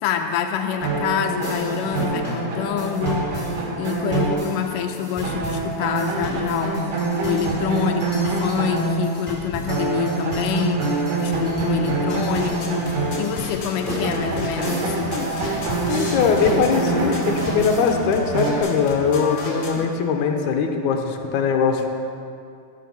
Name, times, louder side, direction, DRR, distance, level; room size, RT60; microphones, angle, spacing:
voice 1, 0.0-15.6, left 8 dB, 90° left, 5 dB, 2.3 m, -27 dB
sound 1, 0.8-4.9 5.2-9.3 9.7-13.8 14.0-18.6, right 3 dB, 80° right, 3.5 m, -25 dB
sound 2, 1.4-17.9, left 1 dB, 20° left, 3.1 m, -35 dB
sound 3, 12.1-19.8, left 3 dB, 45° left, 2.4 m, -34 dB
voice 2, 15.9-21.9, left 5 dB, 75° left, 3 dB, 2.3 m, -21 dB
16.5 x 6.6 x 7.1 m, 2.5 s
omnidirectional pair, 3.7 m